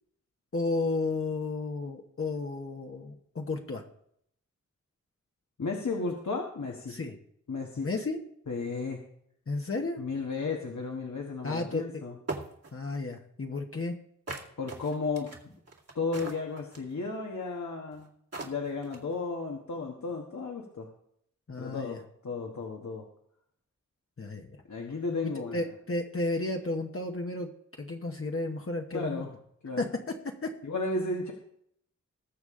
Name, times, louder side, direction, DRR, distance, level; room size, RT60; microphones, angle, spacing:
voice 1, 0.5-3.8 6.9-7.1 7.8-8.2 9.5-10.0 11.4-11.8 12.7-14.0 21.5-22.0 24.2-24.6 25.2-27.5 27.8-29.3 29.8-30.5, left 2 dB, 45° left, 1 dB, 1.1 m, -33 dB
voice 2, 5.6-7.0 7.5-7.9 8.5-9.0 10.0-12.2 14.6-15.5 15.9-18.1 18.4-20.9 21.6-22.0 22.2-23.0 24.7-25.7 28.9-29.3 29.6-29.9 30.6-31.3, left 3 dB, 70° left, 0 dB, 1.5 m, -34 dB
sound 1, 11.7-11.8 12.3-12.7 14.3-16.9 17.9-18.0 18.3-19.1, right 2 dB, 60° right, 2.2 m, -39 dB
20.0 x 6.9 x 3.8 m, 0.71 s
wide cardioid pair, 65°, 30 cm